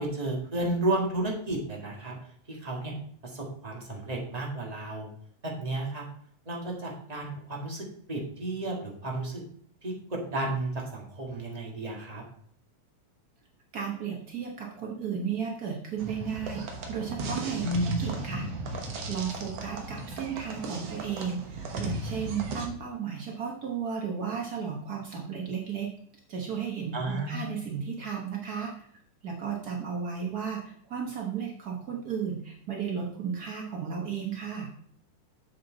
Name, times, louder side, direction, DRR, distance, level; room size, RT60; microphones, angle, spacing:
voice 1, 0.0-2.1 2.5-2.9 3.2-5.1 5.4-6.0 6.4-9.4 9.8-12.2 17.6-17.9 26.9-27.5, right 1 dB, 15° right, -2 dB, 1.3 m, -32 dB
voice 2, 13.7-17.6 18.0-18.5 19.1-25.9 26.3-28.9 29.2-34.7, right 7 dB, 85° right, 0 dB, 0.8 m, -34 dB
sound 1, 16.0-22.7, right 2 dB, 60° right, 2.0 m, -36 dB
7.6 x 7.4 x 3.9 m, 0.62 s
omnidirectional pair, 3.5 m